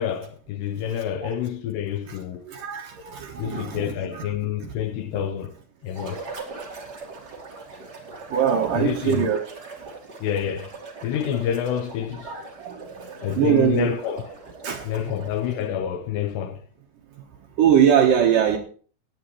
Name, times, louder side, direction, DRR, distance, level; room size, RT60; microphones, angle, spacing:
voice 1, 0.0-2.5 3.4-5.5 5.8-6.2 8.7-9.3 10.2-10.7 11.0-12.3 13.2-14.2 14.8-16.6, left 9 dB, 80° left, 2.5 m, -28 dB
voice 2, 2.5-4.3 4.6-4.7 5.2-5.3 8.3-9.4 12.2-13.9 14.6-14.8 17.6-18.6, right 8 dB, 80° right, 2.0 m, -22 dB
sound 1, 5.8-15.7, right 3 dB, 40° right, 1.6 m, -40 dB
17.0 x 9.4 x 3.1 m
omnidirectional pair, 5.5 m